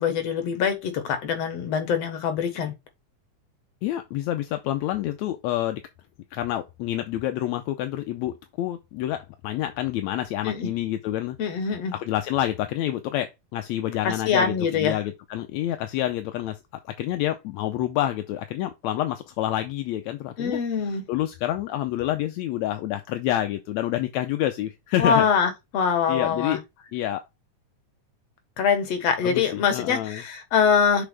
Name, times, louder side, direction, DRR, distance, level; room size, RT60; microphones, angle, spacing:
voice 1, 0.0-2.7 10.4-10.7 11.4-11.9 14.0-15.0 20.4-21.1 25.0-26.6 28.6-31.0, left 6 dB, 60° left, 2.5 m, -24 dB
voice 2, 3.8-5.8 6.3-11.6 11.9-16.6 16.9-25.3 26.1-26.6 26.9-27.2 29.2-30.2, left 13 dB, 75° left, 1.9 m, -28 dB
6.8 x 5.2 x 3.5 m
omnidirectional pair, 3.5 m